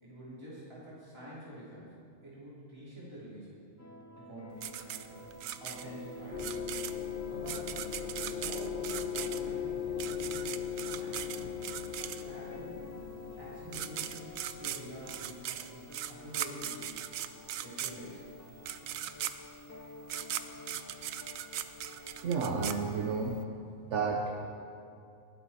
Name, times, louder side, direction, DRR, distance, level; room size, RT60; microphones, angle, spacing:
voice 1, 0.0-1.9 2.2-3.5 4.2-5.3 5.6-6.6 7.3-7.8 8.2-11.6 12.0-12.9 13.4-17.1 17.6-18.3, equal, 20° right, -9 dB, 3.3 m, -47 dB
sound 1, 3.8-22.7, left 1 dB, 25° left, 0.3 m, -51 dB
sound 2, 4.6-12.5 13.4-13.5 13.7-23.4, right 11 dB, 85° right, 1.0 m, -39 dB
sound 3, 6.3-15.4, left 8 dB, 50° left, 0.9 m, -39 dB
voice 2, 22.2-23.4 23.8-24.4, right 4 dB, 65° right, 2 dB, 1.1 m, -31 dB
19.0 x 10.5 x 4.2 m, 2.5 s
omnidirectional pair, 1.3 m